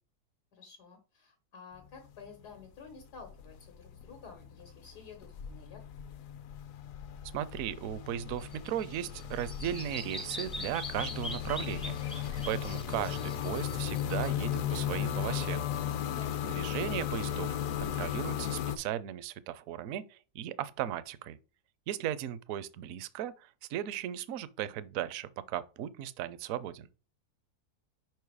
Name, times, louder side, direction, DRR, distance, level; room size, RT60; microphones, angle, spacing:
voice 1, 0.5-5.9 16.1-16.3, left 5 dB, 90° left, 2.0 m, -51 dB
sound 1, 1.8-2.3 2.5-18.8, left 9 dB, 65° left, 1.0 m, -36 dB
voice 2, 7.3-15.6 16.4-21.4 21.9-26.9, right 11 dB, 70° right, 0.9 m, -37 dB
Bird vocalization bird call bird song, 8.4-14.3, left 2 dB, 5° left, 0.4 m, -43 dB
5.3 x 4.7 x 4.7 m
omnidirectional pair, 1.7 m